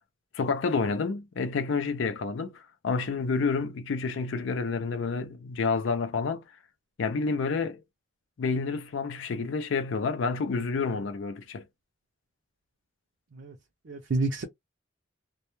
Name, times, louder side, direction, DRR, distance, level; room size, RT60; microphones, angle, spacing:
voice 1, 0.3-6.4 7.0-7.8 8.4-11.6, left 4 dB, 75° left, 0.4 m, -29 dB
voice 2, 13.9-14.4, right 3 dB, 65° right, 0.5 m, -29 dB
2.2 x 2.1 x 2.9 m
head